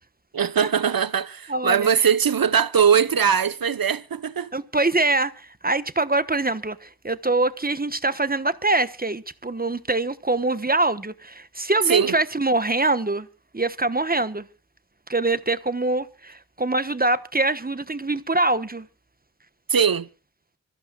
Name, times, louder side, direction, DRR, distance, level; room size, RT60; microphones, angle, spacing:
voice 1, 0.3-4.5 11.9-12.2 19.7-20.1, right 7 dB, 65° right, 1.0 m, -21 dB
voice 2, 1.5-1.9 4.5-13.3 13.5-14.5 15.1-18.9, right 2 dB, 25° right, 1.1 m, -24 dB
26.0 x 14.5 x 2.3 m
cardioid pair, 50°, 37 cm